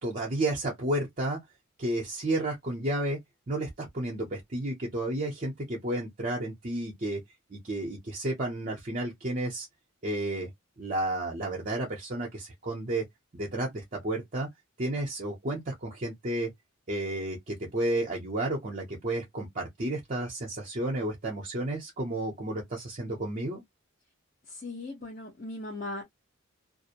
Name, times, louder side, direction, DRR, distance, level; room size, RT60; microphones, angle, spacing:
voice 1, 0.0-1.4 1.8-3.2 3.5-7.2 7.5-9.7 10.0-10.5 10.8-13.1 13.3-14.5 14.8-16.5 16.9-23.6, right 1 dB, 40° right, 0.6 m, -32 dB
voice 2, 24.5-26.0, left 2 dB, 40° left, 0.8 m, -38 dB
2.4 x 2.0 x 2.7 m
head